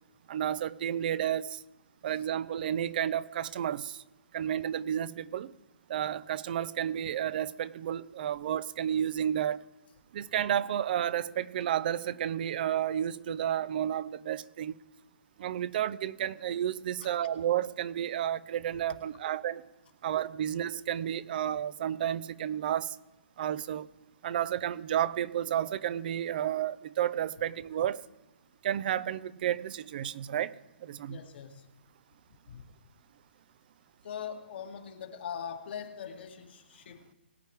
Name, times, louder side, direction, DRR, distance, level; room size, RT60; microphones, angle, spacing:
voice 1, 0.3-1.6 2.0-4.0 4.3-5.5 5.9-9.6 10.1-14.8 15.4-19.6 20.0-23.0 23.4-23.9 24.2-28.0 28.6-30.5 30.8-31.2, right 10 dB, 50° right, 16 dB, 0.8 m, -31 dB
voice 2, 31.1-31.7 32.5-32.6 34.0-37.1, left 8 dB, 60° left, 4 dB, 2.0 m, -42 dB
22.0 x 9.1 x 3.6 m, 1.0 s
hypercardioid pair, 135°, 6 cm